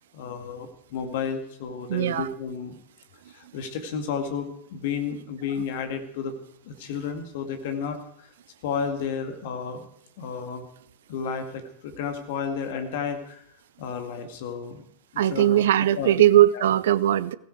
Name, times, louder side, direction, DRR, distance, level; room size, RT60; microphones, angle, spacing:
voice 1, 0.1-2.8 3.3-6.4 6.6-8.3 8.6-9.9 10.2-10.7 11.1-13.4 13.8-14.8 15.3-15.6 16.0-16.1 16.5-16.6, left 6 dB, 50° left, 6 dB, 2.1 m, -32 dB
voice 2, 1.9-2.3 15.2-17.3, right 12 dB, 60° right, 19 dB, 0.6 m, -19 dB
17.5 x 16.5 x 4.7 m, 0.69 s
figure-of-eight pair, 90°, 0 cm